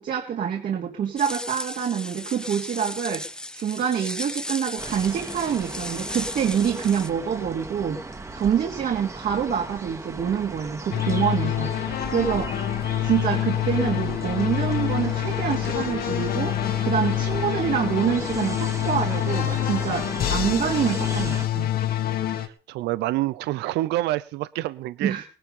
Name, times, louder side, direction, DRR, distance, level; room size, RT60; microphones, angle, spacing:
voice 1, 0.0-3.3 3.5-8.0 8.3-11.8 12.1-12.7 13.0-16.5 16.8-21.7 25.0-25.2, right 8 dB, 55° right, 1 dB, 3.1 m, -26 dB
sound 1, 1.2-7.1, left 1 dB, 5° left, 1.0 m, -35 dB
sound 2, 4.8-21.5, right 3 dB, 15° right, 2.0 m, -37 dB
sound 3, 10.9-22.5, left 12 dB, 65° left, 2.2 m, -26 dB
voice 2, 22.4-25.1, right 16 dB, 85° right, 17 dB, 0.7 m, -27 dB
19.0 x 11.5 x 5.4 m, 0.40 s
cardioid pair, 110°, 17 cm